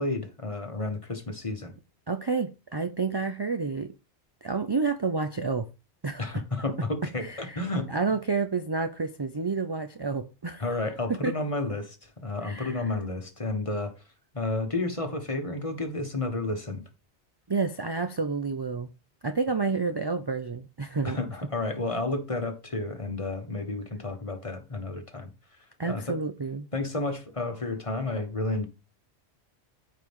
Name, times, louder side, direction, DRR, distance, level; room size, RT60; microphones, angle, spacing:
voice 1, 0.0-1.7 6.2-7.9 10.6-12.0 12.2-13.9 14.3-16.8 21.0-25.3 25.8-26.2 26.7-28.7, left 2 dB, 30° left, 1.5 m, -31 dB
voice 2, 2.1-3.9 4.4-5.7 6.0-6.4 7.2-7.6 7.9-10.7 11.1-11.3 12.4-12.8 17.5-18.9 19.2-21.2 25.8-26.7, right 4 dB, 30° right, 0.5 m, -29 dB
14.0 x 4.7 x 3.7 m
omnidirectional pair, 1.1 m